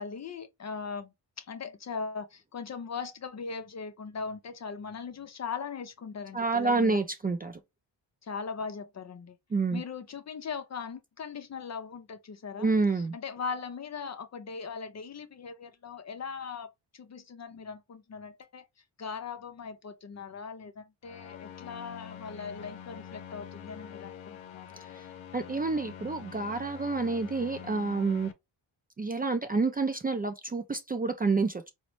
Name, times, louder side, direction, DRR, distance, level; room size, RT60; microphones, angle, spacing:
voice 1, 0.0-7.0 8.2-9.4 9.7-12.7 13.0-18.6 19.0-24.7, left 5 dB, 35° left, 0.5 m, -39 dB
voice 2, 6.3-7.6 9.5-9.8 12.6-13.1 24.9-25.1 25.3-28.3 29.0-31.7, right 3 dB, 20° right, 0.4 m, -28 dB
sound 1, 21.0-28.3, left 9 dB, 85° left, 0.6 m, -45 dB
3.9 x 2.1 x 3.0 m
cardioid pair, 60°, 46 cm